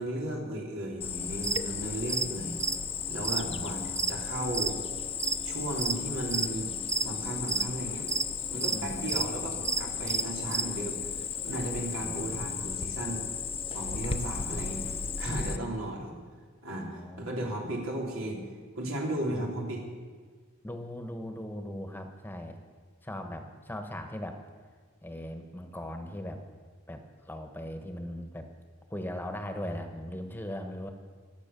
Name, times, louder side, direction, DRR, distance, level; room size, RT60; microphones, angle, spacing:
voice 1, 0.0-2.6 3.1-4.8 5.4-6.7 7.0-8.1 8.5-13.3 13.7-14.8 15.2-16.1 16.6-18.4 18.8-19.8, right 1 dB, 90° right, -1 dB, 3.8 m, -35 dB
Cricket, 1.0-15.6, left 6 dB, 30° left, 0.7 m, -35 dB
sound 1, 1.4-1.6 2.1-2.3 2.5-4.7 5.1-6.0 6.3-6.5 6.9-7.7 8.1-8.3 8.6-9.3 9.6-10.6, right 5 dB, 15° right, 0.4 m, -30 dB
voice 2, 3.4-4.3 8.6-9.5 12.0-13.0 13.9-14.0 15.5-15.9 16.9-17.3 19.3-19.5 20.6-22.6 23.0-24.4 25.0-26.4 26.9-28.5 28.9-30.9, left 1 dB, 10° left, 6 dB, 1.2 m, -40 dB
24.5 x 8.2 x 6.9 m, 1.5 s
head